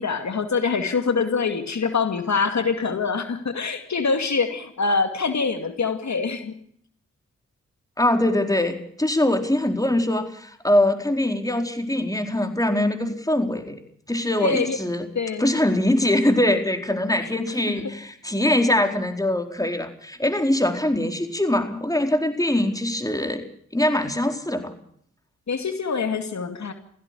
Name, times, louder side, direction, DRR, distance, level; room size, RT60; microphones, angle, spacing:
voice 1, 0.0-6.5 14.4-14.8 15.2-15.4 17.5-17.7 25.5-26.7, left 4 dB, 65° left, 7 dB, 2.4 m, -24 dB
voice 2, 8.0-13.8 14.1-15.1 15.4-23.4 23.7-24.7, left 1 dB, 10° left, 6 dB, 4.4 m, -22 dB
17.0 x 16.0 x 9.9 m, 0.63 s
cardioid pair, 45°, 30 cm